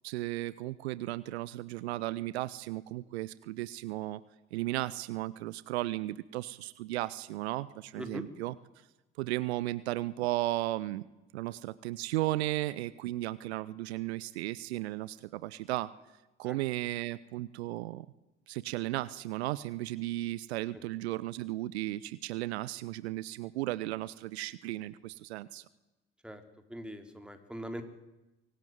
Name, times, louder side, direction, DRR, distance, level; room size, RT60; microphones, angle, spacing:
voice 1, 0.0-4.2 4.5-8.5 9.2-11.0 11.3-15.9 16.4-18.1 18.5-25.6, right 16 dB, 70° right, 18 dB, 0.8 m, -35 dB
voice 2, 26.7-27.8, equal, 5° right, 6 dB, 3.7 m, -41 dB
24.0 x 17.5 x 9.4 m, 0.99 s
figure-of-eight pair, 55°, 34 cm